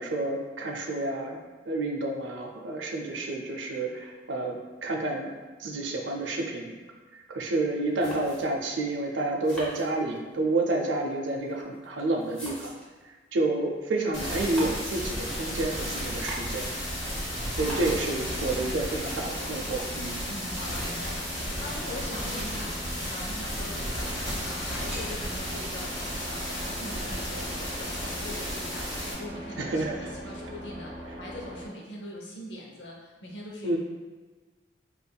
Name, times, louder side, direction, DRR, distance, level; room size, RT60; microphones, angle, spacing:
voice 1, 0.0-1.4 1.7-5.3 5.6-6.7 7.3-12.7 13.3-16.7 17.5-20.2 29.6-30.0 33.6-33.8, right 2 dB, 90° right, 1 dB, 0.5 m, -29 dB
sound 1, 8.0-8.7 9.4-10.4 11.3-13.0 14.2-15.0 15.9-16.7 17.4-18.1 18.6-18.7 18.9-19.5 20.5-21.0, equal, 5° left, 0.8 m, -42 dB
sound 2, 14.1-29.1, equal, 25° left, 1.3 m, -33 dB
sound 3, 15.4-31.7, equal, 30° right, 0.8 m, -43 dB
voice 2, 17.6-18.3 18.7-18.8 20.3-24.1 24.4-25.9 26.2-33.8, left 1 dB, 70° left, -2 dB, 0.8 m, -42 dB
5.2 x 2.5 x 2.2 m, 1.4 s
head